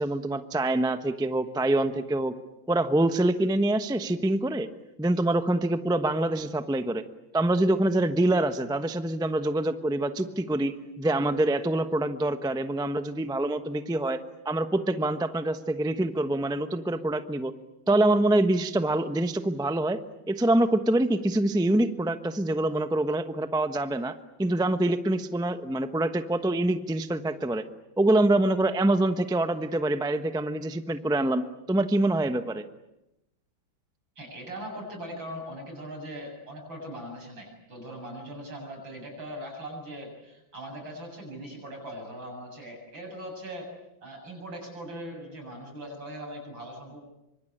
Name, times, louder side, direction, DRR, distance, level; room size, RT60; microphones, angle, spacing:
voice 1, 0.0-2.3 2.7-4.7 5.0-7.0 7.3-14.2 14.4-17.5 17.9-20.0 20.3-27.6 28.0-32.6, right 1 dB, 5° right, 9 dB, 0.7 m, -25 dB
voice 2, 34.2-43.7 44.0-47.0, equal, 80° right, 2 dB, 8.6 m, -40 dB
26.5 x 24.5 x 8.8 m, 0.91 s
omnidirectional pair, 2.1 m